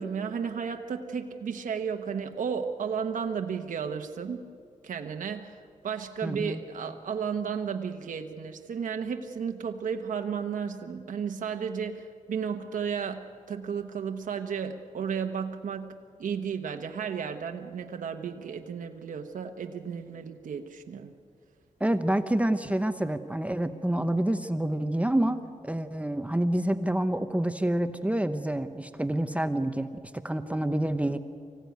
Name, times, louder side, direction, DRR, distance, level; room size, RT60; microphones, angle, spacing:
voice 1, 0.0-4.4 4.8-5.6 5.8-21.1, right 6 dB, 75° right, 5 dB, 1.1 m, -33 dB
voice 2, 6.2-6.6 21.8-25.4 25.6-29.9 30.1-31.2, right 1 dB, 10° right, 9 dB, 0.8 m, -27 dB
24.5 x 16.0 x 9.4 m, 2.3 s
cardioid pair, 90°, 13 cm